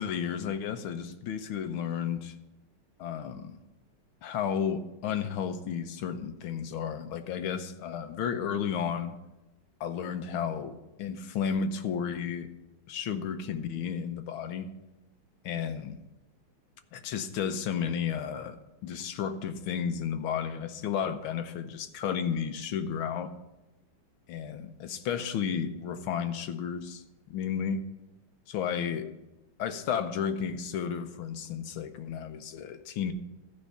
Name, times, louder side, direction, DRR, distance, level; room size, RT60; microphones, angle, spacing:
voice 1, 0.0-2.3 3.0-3.6 4.2-9.1 9.8-12.5 12.9-14.7 15.4-16.0 16.9-18.6 18.8-23.3 24.3-27.0 27.3-27.8 28.5-29.1 29.6-33.1, left 7 dB, 85° left, 1.7 m, -32 dB
14.0 x 5.4 x 6.9 m
omnidirectional pair, 2.2 m